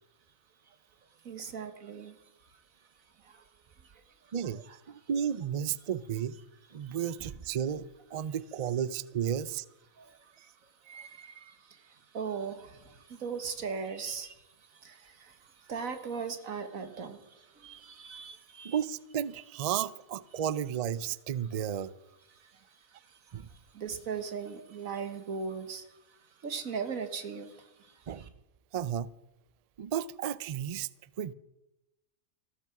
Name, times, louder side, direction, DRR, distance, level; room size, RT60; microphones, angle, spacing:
voice 1, 1.1-4.3 4.7-5.1 6.8-7.2 9.9-18.8 22.3-28.3, right 6 dB, 85° right, 1.9 m, -40 dB
voice 2, 4.3-6.4 6.7-9.6 18.6-21.9 23.3-23.5 28.1-28.3 28.7-29.1 29.8-30.9 31.2-31.3, right 9 dB, 65° right, 0.3 m, -33 dB
14.5 x 13.5 x 6.0 m
omnidirectional pair, 1.4 m